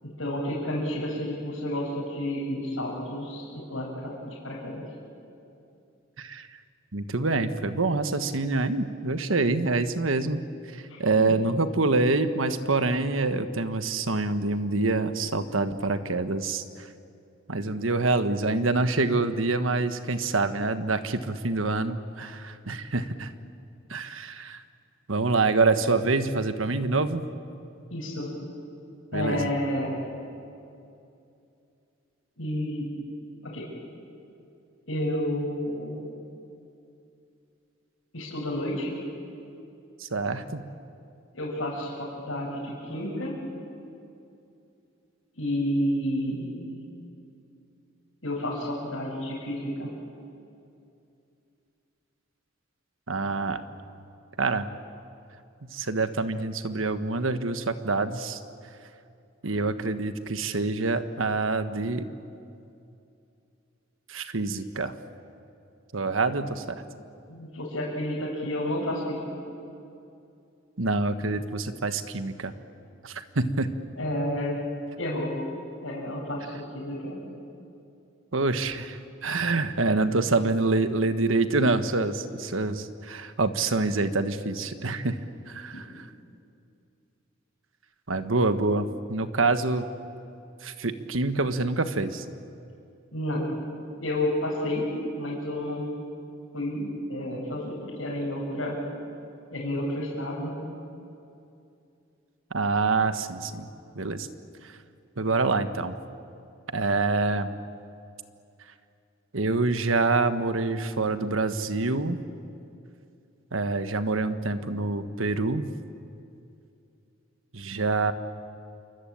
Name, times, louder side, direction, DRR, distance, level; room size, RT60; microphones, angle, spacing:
voice 1, 0.0-4.8 10.9-11.4 27.9-28.3 29.1-30.0 32.4-32.9 33.4-33.7 34.9-36.0 38.1-38.9 41.3-43.3 45.4-46.7 48.2-49.9 67.3-69.3 74.0-74.6 75.0-75.3 75.8-77.2 85.7-85.8 93.1-93.5 94.0-94.9 95.2-95.8 96.5-98.8 99.5-100.5, left 1 dB, 85° left, -6 dB, 6.5 m, -30 dB
voice 2, 6.9-10.4 10.7-16.9 17.5-23.3 23.9-24.6 25.1-27.3 29.1-29.5 40.0-40.7 53.1-53.6 54.4-54.7 55.7-58.4 59.4-62.1 64.1-64.9 65.9-66.6 70.8-72.5 73.0-73.7 78.3-85.2 85.5-86.0 88.1-89.9 90.6-92.2 102.5-103.7 103.9-104.3 105.2-105.9 106.7-107.5 109.3-112.2 113.5-115.7 117.5-118.1, right 3 dB, 85° right, 10 dB, 1.4 m, -26 dB
28.5 x 24.0 x 8.7 m, 2.6 s
head